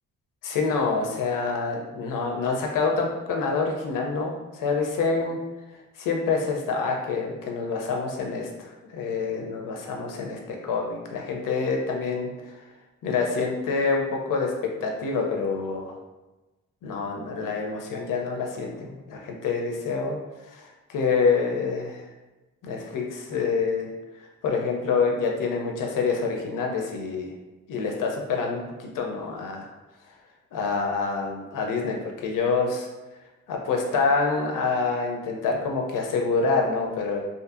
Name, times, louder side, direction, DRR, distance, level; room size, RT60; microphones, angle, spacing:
voice 1, 0.4-5.4 6.0-12.5 13.0-14.5 14.8-16.0 16.8-20.2 20.5-22.0 22.6-23.9 24.2-27.3 27.7-29.7 30.5-32.9 33.5-37.2, left 4 dB, 80° left, 1 dB, 0.5 m, -27 dB
2.6 x 2.6 x 2.4 m, 1.1 s
wide cardioid pair, 125°, 32 cm